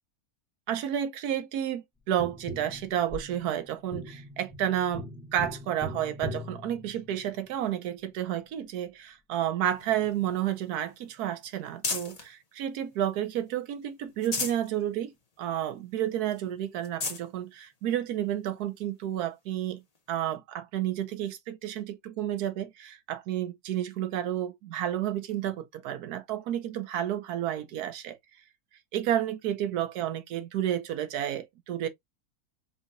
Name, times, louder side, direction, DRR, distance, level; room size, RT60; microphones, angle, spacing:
voice 1, 0.7-5.0 5.3-19.8 20.1-28.2 28.9-31.9, right 11 dB, 85° right, 1.2 m, -31 dB
Tap, 2.2-7.5 10.1-10.2, equal, 10° right, 0.8 m, -41 dB
sound 1, 9.6-12.3 12.8-13.6 14.0-14.7 15.1-15.2 15.6-15.7 16.3-16.4 16.8-17.3 18.1-18.2 19.9-20.0, left 4 dB, 35° left, 0.7 m, -36 dB
5.5 x 2.8 x 2.5 m
omnidirectional pair, 1.6 m